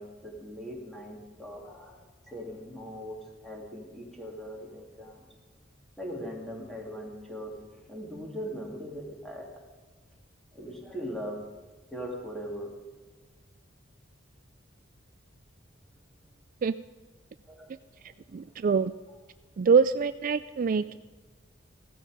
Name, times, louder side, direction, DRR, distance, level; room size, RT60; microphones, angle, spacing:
voice 1, 0.0-5.3 6.0-9.7 10.5-11.6 11.9-12.8 17.5-17.7 18.0-18.1 18.5-18.7, equal, ahead, -1 dB, 3.0 m, -40 dB
voice 2, 18.3-18.9 19.6-21.0, right 5 dB, 45° right, 12 dB, 0.3 m, -24 dB
16.5 x 13.5 x 5.2 m, 1.3 s
head